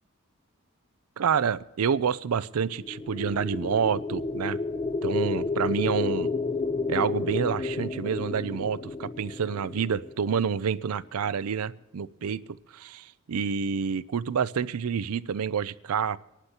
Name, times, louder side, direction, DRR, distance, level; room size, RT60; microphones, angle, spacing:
voice 1, 1.2-4.6 5.0-6.3 6.9-12.4 12.7-16.2, right 6 dB, 85° right, 17 dB, 0.5 m, -28 dB
sound 1, 2.7-10.8, left 3 dB, 25° left, 0.4 m, -31 dB
26.5 x 11.5 x 2.9 m, 0.91 s
head